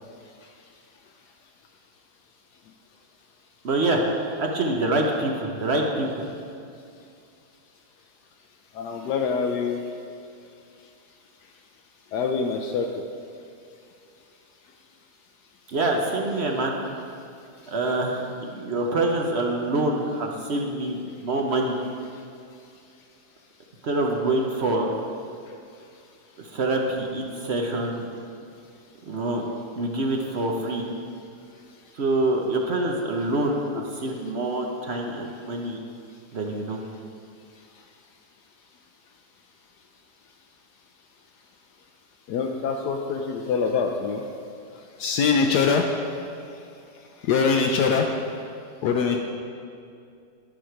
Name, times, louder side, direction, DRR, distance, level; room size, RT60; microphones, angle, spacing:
voice 1, 3.6-4.0 4.4-6.2 15.7-16.7 17.7-21.8 23.8-24.9 26.4-28.0 29.1-29.4 29.8-30.9 31.9-35.8 36.3-36.8, right 2 dB, 50° right, 1 dB, 0.8 m, -26 dB
voice 2, 8.7-9.8 12.1-12.9 42.3-44.2 45.0-45.9 47.2-48.1 48.8-49.2, left 5 dB, 75° left, 3 dB, 1.1 m, -23 dB
11.5 x 6.3 x 4.6 m, 2.4 s
omnidirectional pair, 1.9 m